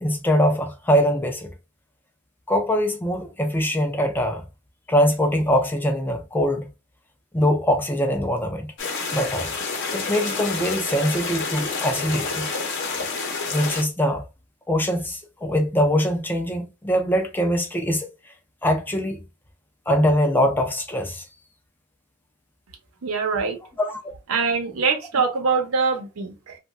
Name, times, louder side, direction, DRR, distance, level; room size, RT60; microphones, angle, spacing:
voice 1, 0.0-1.5 2.5-4.4 4.9-6.7 7.3-8.7 9.1-9.5 9.9-12.5 13.5-14.2 14.7-18.1 18.6-19.2 19.9-21.2 23.8-24.0, equal, 10° left, 0.4 m, -22 dB
sound 1, 8.8-13.8, left 4 dB, 60° left, 0.8 m, -28 dB
voice 2, 23.0-23.6 24.3-26.6, right 5 dB, 90° right, 0.8 m, -23 dB
2.9 x 2.3 x 2.5 m
head